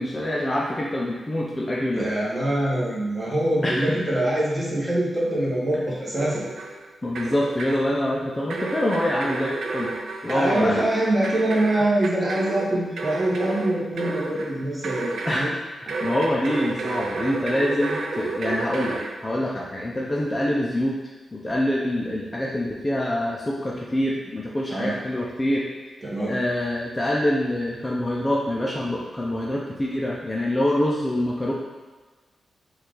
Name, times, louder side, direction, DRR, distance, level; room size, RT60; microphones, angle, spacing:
voice 1, 0.0-2.1 3.6-4.0 7.0-9.9 10.2-10.8 15.2-15.5 16.0-21.0 21.3-25.6 26.3-31.5, left 1 dB, 15° left, -4 dB, 0.4 m, -25 dB
voice 2, 1.9-6.4 10.3-15.5 15.9-16.0 24.7-25.0 26.0-26.4, right 1 dB, 20° right, -6 dB, 1.2 m, -24 dB
sound 1, 6.2-6.9 7.2-7.9 8.5-15.6 15.9-19.1, right 3 dB, 80° right, 0.5 m, -32 dB
5.6 x 2.4 x 3.7 m, 1.3 s
wide cardioid pair, 140°, 0 cm